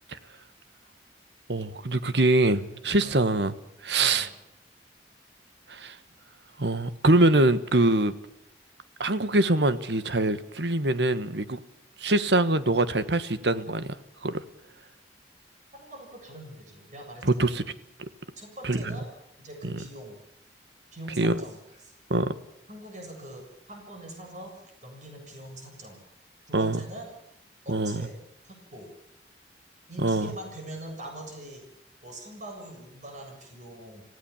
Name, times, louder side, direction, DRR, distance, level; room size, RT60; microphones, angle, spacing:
voice 1, 1.5-3.5 3.8-4.3 5.7-6.0 6.6-8.1 9.0-11.6 12.0-13.9 14.2-14.4 17.2-17.6 18.6-18.9 19.6-19.8 21.2-21.4 22.1-22.4 26.5-26.8 27.7-28.0 30.0-30.3, right 2 dB, 80° right, 13 dB, 1.4 m, -24 dB
voice 2, 3.0-3.3 4.0-4.3 15.8-17.5 18.4-19.1 19.4-20.2 20.9-21.6 22.7-26.0 26.5-27.1 27.6-28.2 28.4-28.9 29.9-31.6 32.0-34.0, right 1 dB, 45° right, 3 dB, 7.2 m, -43 dB
26.5 x 16.0 x 7.2 m, 0.83 s
head